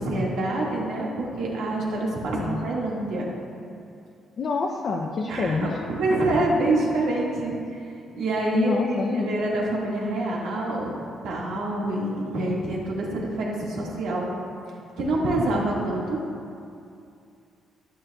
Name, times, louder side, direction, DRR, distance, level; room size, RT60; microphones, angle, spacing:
voice 1, 0.0-3.3 5.3-7.8 8.2-10.9 11.2-14.3 15.0-16.2, right 2 dB, 90° right, -4 dB, 1.8 m, -26 dB
voice 2, 4.4-5.9 8.5-9.5, left 4 dB, 40° left, 1 dB, 0.4 m, -27 dB
13.0 x 7.5 x 2.3 m, 2.5 s
cardioid pair, 165°, 0 cm